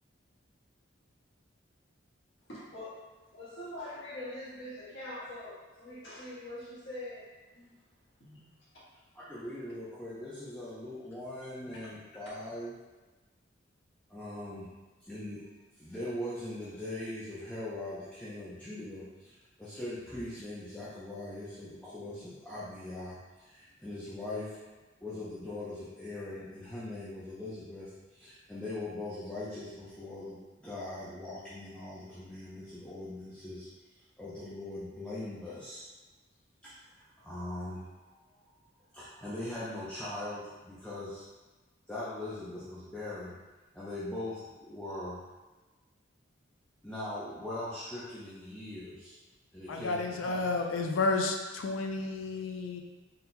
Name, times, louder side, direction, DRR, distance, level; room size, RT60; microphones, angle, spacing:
voice 1, 2.4-7.8 8.2-8.4 11.6-11.8, left 1 dB, 70° left, -8 dB, 1.4 m, -44 dB
voice 2, 9.1-12.8 14.1-14.7 15.0-15.4 15.8-23.2 23.4-24.6 25.0-33.7 34.2-35.8 36.6-36.8 37.2-38.2 38.9-41.2 41.9-43.3 43.7-45.2 46.8-49.1 49.5-50.5, left 1 dB, 5° left, -10 dB, 0.6 m, -41 dB
voice 3, 49.7-52.8, left 3 dB, 90° left, 3 dB, 0.5 m, -31 dB
4.2 x 3.8 x 2.2 m, 1.2 s
head